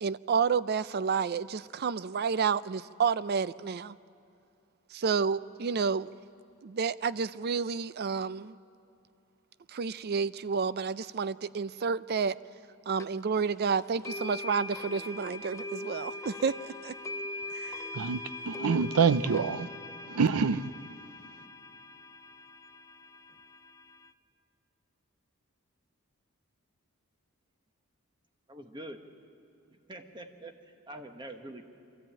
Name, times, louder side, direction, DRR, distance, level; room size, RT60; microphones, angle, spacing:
voice 1, 0.0-3.9 4.9-6.1 6.6-8.6 9.7-12.4 12.9-16.5 16.8-16.9 17.5-17.8, right 5 dB, 45° right, 0.4 m, -30 dB
sound 1, 13.0-13.1 14.0-24.1, left 2 dB, 15° left, 0.5 m, -41 dB
voice 2, 17.9-19.7 20.1-20.8, right 5 dB, 90° right, 0.6 m, -26 dB
voice 3, 28.5-29.0 29.7-30.5 30.9-31.6, right 1 dB, 20° right, 1.2 m, -44 dB
24.5 x 14.5 x 8.9 m
head